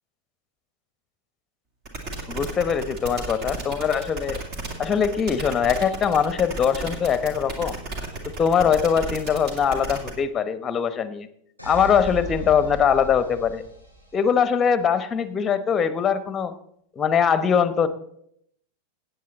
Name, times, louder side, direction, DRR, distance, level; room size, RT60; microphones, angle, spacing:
sound 1, 1.8-10.1, right 3 dB, 40° right, 2.4 m, -34 dB
voice 1, 2.3-4.4 4.8-7.8 8.2-11.3 11.6-13.6 14.1-16.5 17.0-17.9, left 7 dB, 20° left, 13 dB, 0.9 m, -22 dB
sound 2, 11.6-14.5, right 2 dB, 85° right, 5.4 m, -37 dB
17.0 x 8.2 x 4.1 m, 0.73 s
figure-of-eight pair, 90°, 0 cm